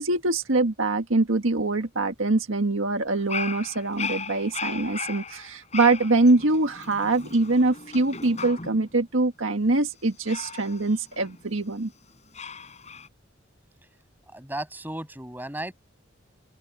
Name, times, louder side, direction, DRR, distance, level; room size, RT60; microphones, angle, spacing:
voice 1, 0.0-11.9, right 2 dB, 80° right, 1.6 m, -24 dB
Dog, 3.1-8.9 10.3-11.7 12.3-13.1, left 5 dB, 35° left, 6.8 m, -37 dB
voice 2, 14.3-15.7, right 1 dB, 10° right, 7.7 m, -34 dB
open air
head